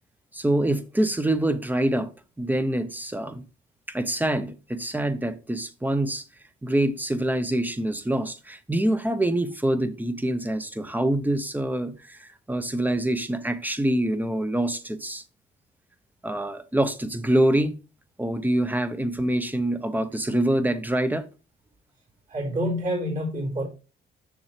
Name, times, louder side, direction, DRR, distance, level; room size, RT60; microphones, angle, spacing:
voice 1, 0.3-2.1 2.4-3.4 3.9-6.2 6.6-15.2 16.2-17.7 18.2-21.2, right 1 dB, 10° right, 0.9 m, -25 dB
voice 2, 22.3-23.7, equal, 40° right, 4.2 m, -27 dB
7.0 x 6.3 x 3.3 m
cardioid pair, 90°, 20 cm